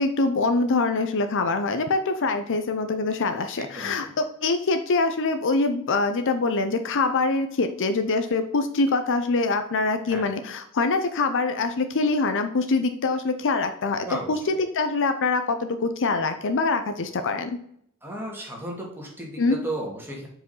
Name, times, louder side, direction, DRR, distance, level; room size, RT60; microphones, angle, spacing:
voice 1, 0.0-4.1 4.4-17.6 19.4-19.6, left 3 dB, 60° left, 8 dB, 0.6 m, -24 dB
voice 2, 3.6-4.1 10.1-10.3 14.0-14.4 18.0-20.3, right 1 dB, 10° right, -2 dB, 2.0 m, -34 dB
5.1 x 4.8 x 5.4 m, 0.69 s
head